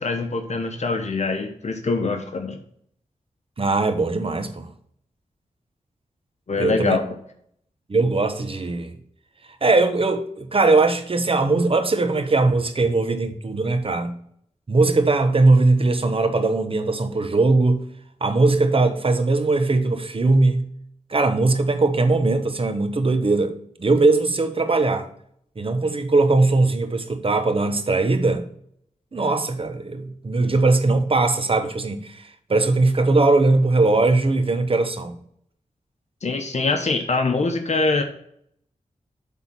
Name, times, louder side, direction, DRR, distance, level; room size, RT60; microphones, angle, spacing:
voice 1, 0.0-2.6 6.5-7.0 36.2-38.0, left 3 dB, 60° left, 1.0 m, -23 dB
voice 2, 3.6-4.7 6.6-7.0 7.9-8.9 9.6-14.1 14.7-17.8 18.2-20.7 21.1-23.5 23.8-25.1 25.6-28.4 29.1-32.2 32.5-35.1, right 3 dB, 45° right, 1.0 m, -20 dB
8.1 x 3.7 x 5.9 m
cardioid pair, 65°, 13 cm